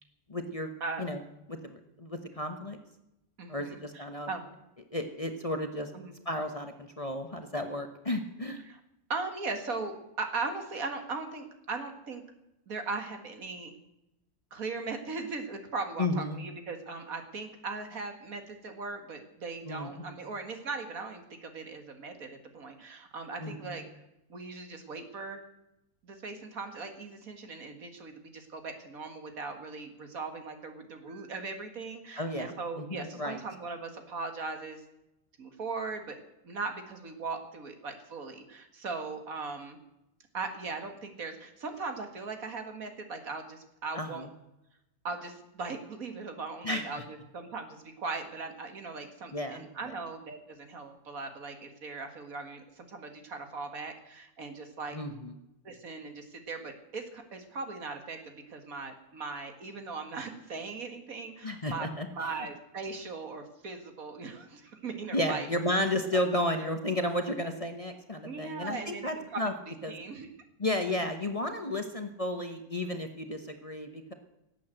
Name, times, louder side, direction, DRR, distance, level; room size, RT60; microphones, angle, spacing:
voice 1, 0.3-0.7 1.0-1.2 1.5-2.8 3.5-4.3 4.9-5.9 6.2-8.6 16.0-16.4 19.6-20.2 23.4-23.8 32.2-33.4 43.9-44.3 46.6-46.9 49.3-49.6 54.9-55.3 61.4-62.3 65.1-69.5 69.8-69.9 70.6-74.1, left 1 dB, 25° left, 5 dB, 1.0 m, -33 dB
voice 2, 3.4-4.5 5.9-6.2 8.7-8.8 9.1-12.2 12.7-13.8 14.5-23.8 24.3-25.4 26.0-34.8 35.4-36.2 36.4-39.8 40.3-44.3 45.0-55.0 55.6-61.9 62.2-65.5 68.2-69.4 69.9-70.3, right 4 dB, 70° right, 6 dB, 2.3 m, -39 dB
18.0 x 8.5 x 7.8 m, 0.89 s
omnidirectional pair, 1.5 m